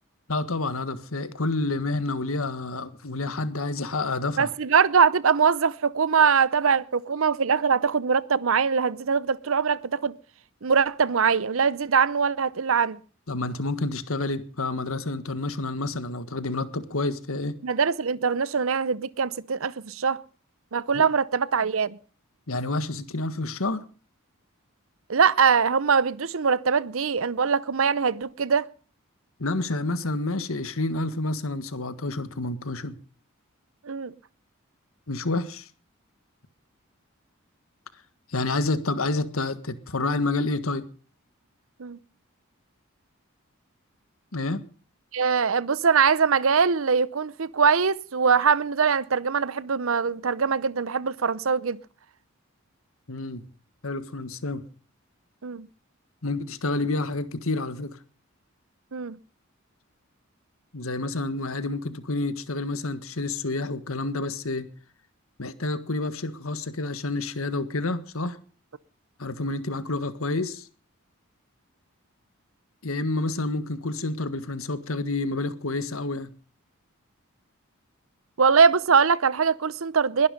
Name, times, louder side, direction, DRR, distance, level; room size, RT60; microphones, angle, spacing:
voice 1, 0.3-4.5 13.3-17.6 20.9-21.0 22.5-23.8 29.4-32.9 35.1-35.7 38.3-40.8 44.3-44.6 53.1-53.4 53.8-54.6 56.2-58.0 60.7-64.7 65.4-68.4 69.2-70.7 72.8-76.3, left 2 dB, 75° left, 1.6 m, -29 dB
voice 2, 4.4-10.2 10.6-13.0 17.6-20.2 20.7-22.0 25.1-28.7 33.8-34.1 41.8-42.0 45.1-51.8 55.4-55.7 58.9-59.2 78.4-80.3, right 6 dB, 70° right, 0.7 m, -22 dB
21.5 x 11.5 x 5.3 m
head